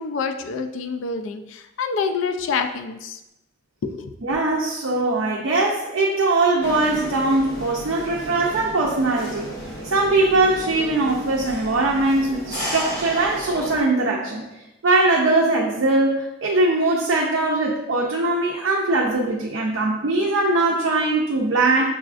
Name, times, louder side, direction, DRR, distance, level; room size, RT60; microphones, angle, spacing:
voice 1, 0.0-3.2 3.8-4.1, left 5 dB, 70° left, 7 dB, 0.3 m, -27 dB
voice 2, 4.2-9.5 9.9-14.4 14.8-21.8, right 2 dB, 75° right, -2 dB, 0.5 m, -21 dB
sound 1, 6.6-13.8, equal, 50° left, 1.1 m, -33 dB
6.1 x 2.4 x 2.4 m, 0.94 s
head